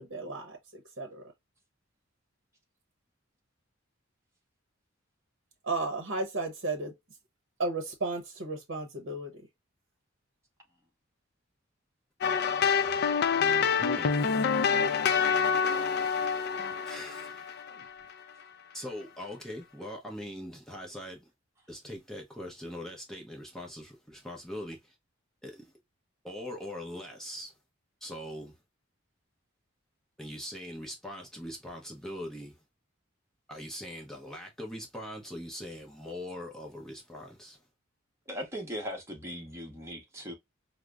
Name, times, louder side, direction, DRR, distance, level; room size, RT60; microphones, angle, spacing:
voice 1, 0.0-1.3 5.6-6.9 7.6-9.4, right 3 dB, 65° right, 0.8 m, -34 dB
sound 1, 12.2-18.1, left 6 dB, 55° left, 0.4 m, -27 dB
voice 2, 13.4-14.2 16.8-17.5 18.7-21.3 21.7-24.9 25.4-25.7 26.2-27.5 28.0-28.5 30.2-32.6 33.5-37.6, left 1 dB, 5° left, 0.7 m, -41 dB
voice 3, 38.3-40.3, equal, 15° right, 1.0 m, -39 dB
4.8 x 2.0 x 2.3 m
head